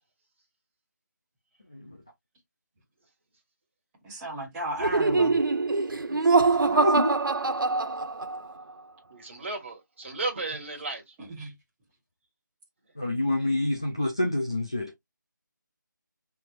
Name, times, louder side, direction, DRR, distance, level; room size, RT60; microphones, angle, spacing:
voice 1, 4.0-5.4 11.4-11.5, right 1 dB, 10° right, 1.0 m, -34 dB
Laughter, 4.8-8.5, right 3 dB, 85° right, 0.9 m, -24 dB
voice 2, 6.1-6.4 6.7-7.1 13.0-15.0, left 1 dB, 15° left, 0.3 m, -28 dB
voice 3, 9.1-11.2, right 3 dB, 35° right, 1.6 m, -34 dB
4.2 x 3.3 x 2.4 m
figure-of-eight pair, 170°, 11 cm